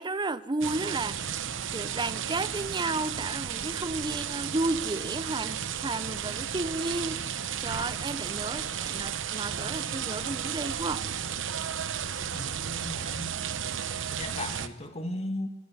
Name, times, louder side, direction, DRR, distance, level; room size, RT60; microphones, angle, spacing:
voice 1, 0.0-1.4 1.7-11.1, right 2 dB, 20° right, 0.7 m, -33 dB
sound 1, 0.6-14.7, right 8 dB, 65° right, 0.9 m, -33 dB
sound 2, 6.6-7.3 7.8-7.9 8.4-8.7 9.5-9.6 9.8-9.9, equal, 75° left, 7.8 m, -52 dB
voice 2, 12.3-13.7 14.1-15.5, left 1 dB, 30° left, 1.9 m, -37 dB
22.5 x 15.5 x 9.7 m
head